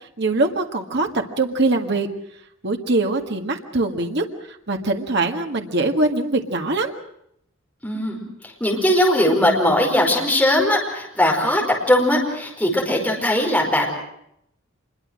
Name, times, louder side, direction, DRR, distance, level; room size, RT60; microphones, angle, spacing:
voice 1, 0.0-2.1 2.6-6.9, right 2 dB, 60° right, 4 dB, 1.8 m, -23 dB
voice 2, 7.8-13.9, left 1 dB, 10° left, 0 dB, 5.0 m, -19 dB
26.0 x 22.5 x 6.3 m, 0.76 s
head